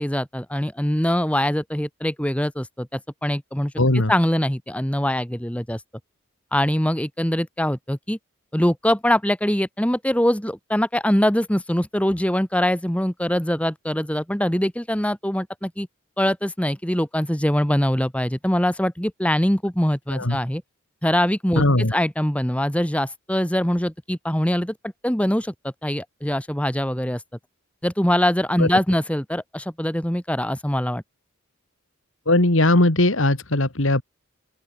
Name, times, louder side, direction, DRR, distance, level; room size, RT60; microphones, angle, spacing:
voice 1, 0.0-5.8 6.5-8.2 8.5-15.9 16.2-20.6 21.0-27.2 27.8-31.0, equal, 5° left, 1.4 m, -23 dB
voice 2, 3.8-4.1 20.2-20.4 21.6-21.9 28.6-28.7 32.3-34.0, left 1 dB, 65° left, 2.4 m, -19 dB
open air
head